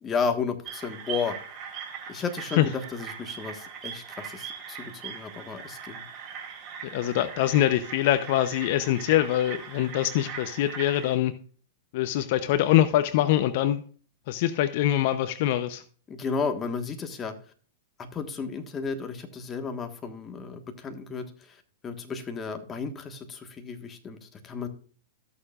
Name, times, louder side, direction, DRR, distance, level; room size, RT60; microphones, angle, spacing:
voice 1, 0.0-1.4 2.1-6.0 16.1-17.3 18.0-24.7, left 5 dB, 20° left, 1.5 m, -33 dB
sound 1, 0.6-11.1, right 7 dB, 30° right, 3.7 m, -40 dB
voice 2, 6.8-11.3 11.9-13.8 14.3-15.8, left 13 dB, 55° left, 0.7 m, -24 dB
17.0 x 6.8 x 2.4 m
hypercardioid pair, 140°, 0 cm